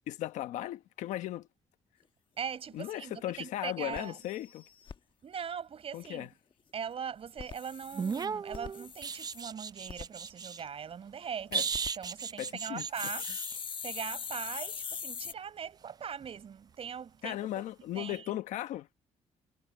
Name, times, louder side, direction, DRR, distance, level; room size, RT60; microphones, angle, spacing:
voice 1, 0.1-1.5 2.7-4.6 5.9-6.3 11.5-11.6 12.4-12.9 17.2-18.9, left 13 dB, 85° left, 1.2 m, -37 dB
voice 2, 2.4-4.2 5.2-6.3 6.7-11.7 12.0-13.3 13.8-17.6 17.9-18.3, right 7 dB, 50° right, 5.8 m, -41 dB
sound 1, 2.8-2.9 3.3-3.4 3.6-3.7 3.9-5.0 7.2-9.4 9.9-10.1 11.5-11.9 12.9-15.3, left 6 dB, 45° left, 1.2 m, -41 dB
sound 2, 7.9-10.6 11.5-13.6 16.2-16.4, right 5 dB, 35° right, 0.5 m, -36 dB
cardioid pair, 90°, 12 cm